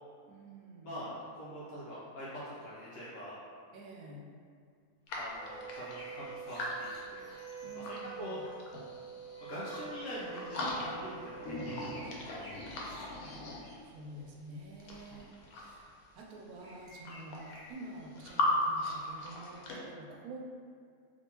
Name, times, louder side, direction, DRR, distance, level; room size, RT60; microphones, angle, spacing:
voice 1, 0.3-1.0 3.7-4.3 7.6-8.4 13.8-17.4 17.7-20.4, right 2 dB, 85° right, -1 dB, 1.1 m, -49 dB
voice 2, 0.8-3.4 5.1-7.3 7.7-8.4 9.4-13.1 15.1-15.3, equal, 70° left, -8 dB, 0.9 m, -44 dB
sound 1, 5.1-8.0 8.4-9.9 10.2-11.2 11.4-14.0 14.7-15.9 16.6-16.7 16.9-18.5 18.8-19.8, left 2 dB, 85° left, 1.1 m, -39 dB
Wind instrument woodwind instrument, 5.3-12.0, right 7 dB, 15° right, 0.4 m, -46 dB
sound 2, 5.7-7.8 9.3-9.4 9.6-9.7 11.1-14.0 14.2-14.5 15.3-15.4 16.6-17.7, left 1 dB, 25° left, 0.9 m, -54 dB
3.5 x 2.7 x 2.8 m, 2.3 s
omnidirectional pair, 1.5 m